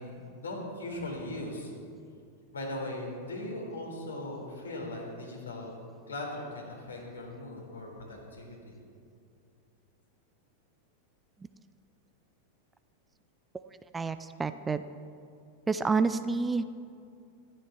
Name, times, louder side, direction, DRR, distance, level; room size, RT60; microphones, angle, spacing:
voice 1, 0.0-1.7 2.5-5.7 6.1-8.8, left 1 dB, 70° left, -2 dB, 4.0 m, -39 dB
voice 2, 13.9-14.8 15.7-16.6, right 4 dB, 15° right, 11 dB, 0.5 m, -28 dB
13.5 x 13.0 x 6.2 m, 2.4 s
figure-of-eight pair, 90°, 0 cm